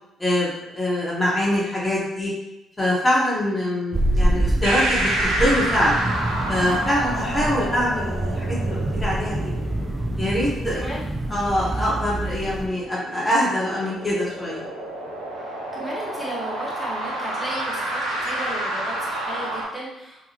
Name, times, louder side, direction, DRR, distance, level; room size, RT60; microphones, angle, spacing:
voice 1, 0.2-2.3 2.8-6.0 6.5-9.5 10.2-10.9 11.3-14.6, equal, 20° left, -6 dB, 1.0 m, -24 dB
sound 1, 3.9-12.7, right 1 dB, 25° right, 0.4 m, -26 dB
sound 2, 4.6-19.6, right 1 dB, 85° right, 0.5 m, -30 dB
voice 2, 10.7-11.1 11.7-11.9 15.4-20.2, right 1 dB, 10° right, -6 dB, 1.1 m, -35 dB
2.8 x 2.2 x 2.8 m, 0.94 s
hypercardioid pair, 45°, 0 cm